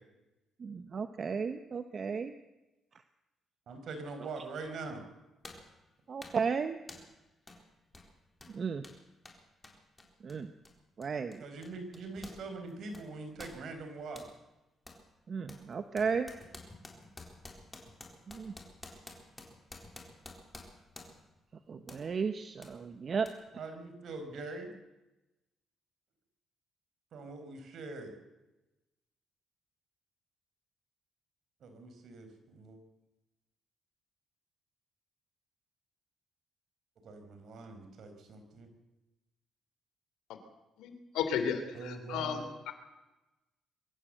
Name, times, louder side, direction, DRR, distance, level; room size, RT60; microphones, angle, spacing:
voice 1, 0.6-2.3 6.1-6.8 8.5-8.8 10.2-10.5 11.0-11.4 15.3-16.3 18.3-18.5 21.7-23.3, right 5 dB, 45° right, 9 dB, 1.0 m, -34 dB
voice 2, 3.7-5.0 11.4-14.2 23.5-24.7 27.1-28.1 31.6-32.8 37.0-38.7 41.7-42.5, right 3 dB, 65° right, 6 dB, 5.1 m, -43 dB
sound 1, 4.6-4.7 5.4-5.7 6.2-6.5 6.9-7.2 7.5-7.6 7.9-12.4 12.7-14.3 14.9-15.0 15.5-21.3 21.9-22.1 22.6-22.8 23.2-23.3, left 2 dB, 15° left, 4.0 m, -51 dB
voice 3, 40.8-42.4 42.7-42.8, left 7 dB, 90° left, 8 dB, 3.0 m, -34 dB
23.5 x 14.5 x 7.9 m, 1.0 s
cardioid pair, 90°, 0 cm